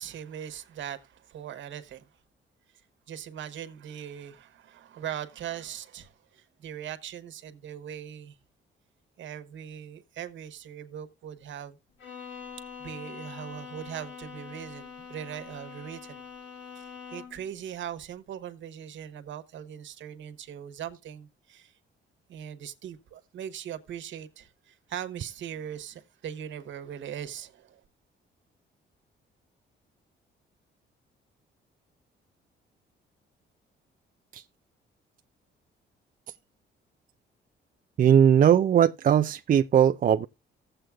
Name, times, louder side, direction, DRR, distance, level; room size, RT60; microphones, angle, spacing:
voice 1, 0.0-2.1 3.1-8.4 9.2-11.8 12.8-16.2 16.7-21.7 22.3-27.8, right 9 dB, 70° right, 1.2 m, -40 dB
Bowed string instrument, 12.0-17.5, left 6 dB, 65° left, 3.2 m, -44 dB
voice 2, 38.0-40.3, right 9 dB, 45° right, 0.4 m, -20 dB
15.5 x 7.7 x 2.3 m
cardioid pair, 90°, 20 cm